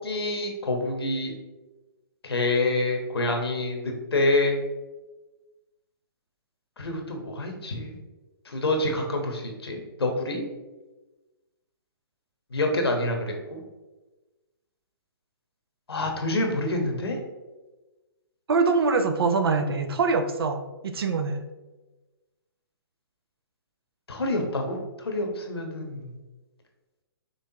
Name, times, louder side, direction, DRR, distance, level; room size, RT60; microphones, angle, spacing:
voice 1, 0.0-1.3 2.2-4.6 6.8-8.0 8.5-10.5 12.5-13.6 15.9-17.2 24.1-26.1, left 2 dB, 90° left, 2 dB, 1.0 m, -27 dB
voice 2, 18.5-21.4, right 4 dB, 75° right, 7 dB, 0.6 m, -24 dB
5.6 x 3.3 x 2.8 m, 1.2 s
hypercardioid pair, 135°, 13 cm